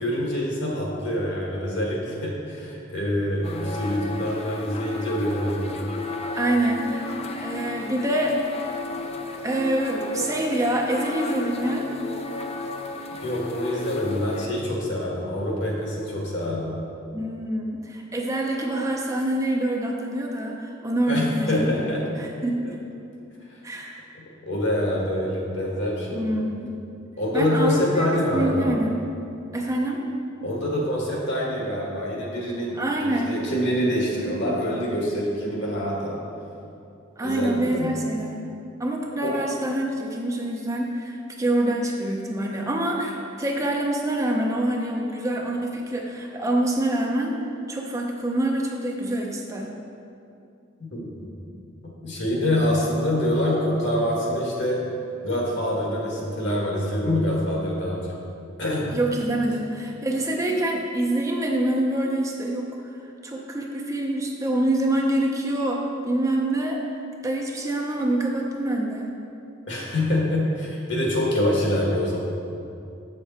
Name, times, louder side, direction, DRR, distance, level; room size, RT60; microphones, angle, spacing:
voice 1, 0.0-5.7 13.2-16.8 21.1-22.0 23.5-23.6 24.4-26.3 27.2-28.7 30.4-36.2 37.2-37.9 39.2-39.3 50.9-51.3 52.0-54.8 55.2-58.2 58.6-58.9 69.7-72.2, left 1 dB, 60° left, -3 dB, 1.7 m, -25 dB
sound 1, 3.4-14.5, left 2 dB, 30° left, 0.4 m, -33 dB
voice 2, 6.3-8.7 9.4-11.9 17.1-21.9 22.2-22.8 23.6-24.1 26.1-26.7 27.3-28.1 28.3-29.1 29.5-30.0 32.8-33.4 37.2-38.4 38.8-47.3 47.7-49.7 58.9-62.8 63.2-69.1, right 1 dB, 15° right, 0 dB, 0.5 m, -26 dB
7.2 x 6.6 x 4.3 m, 2.6 s
head